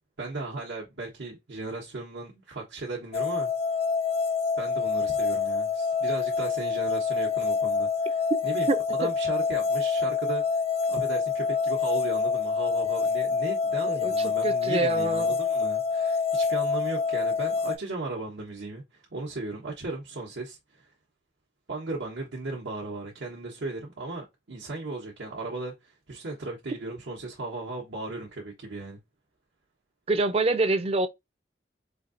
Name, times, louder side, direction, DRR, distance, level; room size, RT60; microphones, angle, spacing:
voice 1, 0.2-3.5 4.6-10.6 10.9-20.9 21.7-29.0, right 2 dB, 90° right, 1.0 m, -36 dB
sound 1, 3.1-17.8, left 5 dB, 35° left, 0.4 m, -26 dB
voice 2, 8.7-9.1 13.9-15.4 30.1-31.1, right 3 dB, 35° right, 0.4 m, -26 dB
4.5 x 2.7 x 2.5 m
head